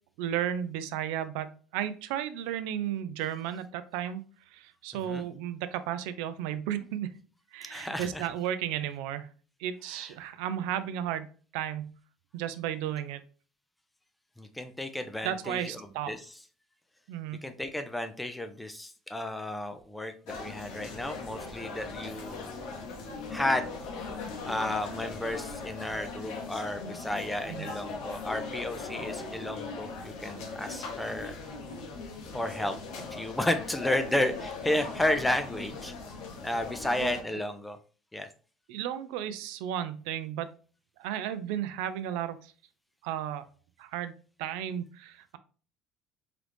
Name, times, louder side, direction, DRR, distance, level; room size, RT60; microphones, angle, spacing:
voice 1, 0.2-4.2 4.5-7.1 7.5-9.3 9.6-11.3 11.5-11.9 12.3-13.2 15.2-16.1 17.1-17.4 27.5-27.7 37.0-37.2 38.7-40.5 41.0-42.5 43.0-43.4 43.8-44.1 44.4-45.4, right 10 dB, 85° right, 12 dB, 0.4 m, -34 dB
voice 2, 7.7-8.3 9.9-10.1 14.4-16.3 17.4-22.8 23.3-23.7 24.5-31.4 32.3-32.8 33.1-35.9 36.4-37.8 38.1-38.3, left 1 dB, 5° left, 8 dB, 0.3 m, -32 dB
sound 1, 20.3-37.2, left 4 dB, 75° left, 0.9 m, -39 dB
3.8 x 3.1 x 3.2 m, 0.39 s
cardioid pair, 175°, 0 cm